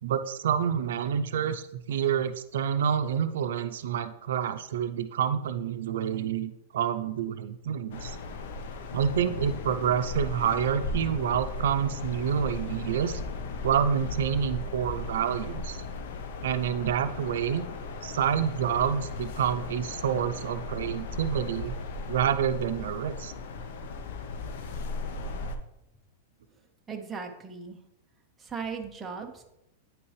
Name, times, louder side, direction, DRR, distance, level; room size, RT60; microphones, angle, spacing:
voice 1, 0.0-8.2 8.9-13.2 13.6-15.8 16.4-17.6 18.0-21.8 22.1-23.3, right 8 dB, 80° right, 10 dB, 0.5 m, -28 dB
sound 1, 7.9-25.6, left 3 dB, 60° left, 0.8 m, -36 dB
voice 2, 26.9-27.8 28.4-29.4, right 5 dB, 10° right, 2 dB, 0.6 m, -37 dB
9.0 x 5.8 x 3.2 m, 0.86 s
supercardioid pair, 165°, 0 cm